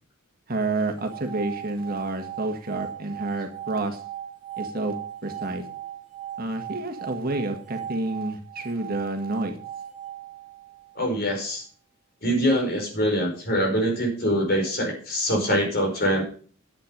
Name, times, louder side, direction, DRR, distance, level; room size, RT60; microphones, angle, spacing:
voice 1, 0.5-4.0 4.6-5.0 5.2-5.6 6.4-9.6, right 2 dB, 40° right, 5 dB, 1.7 m, -29 dB
sound 1, 0.9-11.1, right 10 dB, ahead, 2.8 m, -38 dB
voice 2, 10.9-11.6 12.2-16.2, equal, 45° left, 1 dB, 5.0 m, -24 dB
10.0 x 8.8 x 5.2 m, 0.41 s
head